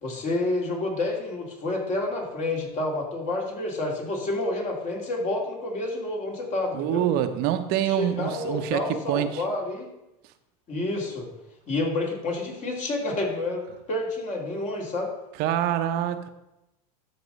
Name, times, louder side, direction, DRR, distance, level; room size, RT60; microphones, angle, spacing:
voice 1, 0.0-7.0 7.8-9.9 10.7-11.3 11.7-13.6 13.9-15.1, left 2 dB, 40° left, 0 dB, 2.8 m, -29 dB
voice 2, 6.7-9.4 15.4-16.3, right 11 dB, 55° right, 9 dB, 0.8 m, -26 dB
12.5 x 4.2 x 5.5 m, 0.91 s
supercardioid pair, 110°, 20 cm